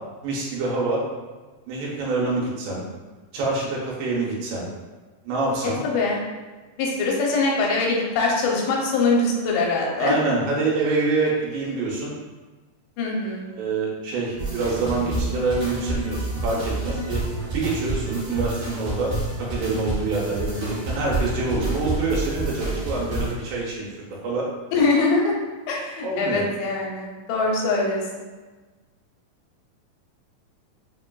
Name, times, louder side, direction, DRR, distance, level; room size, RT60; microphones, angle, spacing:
voice 1, 0.2-1.0 1.7-2.8 3.3-4.7 5.2-5.8 10.0-12.2 13.2-13.3 13.6-17.2 17.5-24.5 26.0-26.5, right 3 dB, 90° right, -3 dB, 3.0 m, -26 dB
voice 2, 5.8-6.2 6.8-10.2 13.0-13.5 24.7-25.3 25.7-28.2, left 3 dB, 90° left, -2 dB, 2.7 m, -23 dB
sound 1, 14.4-23.3, right 2 dB, 75° right, 1.4 m, -29 dB
6.3 x 2.2 x 2.5 m, 1.3 s
omnidirectional pair, 4.7 m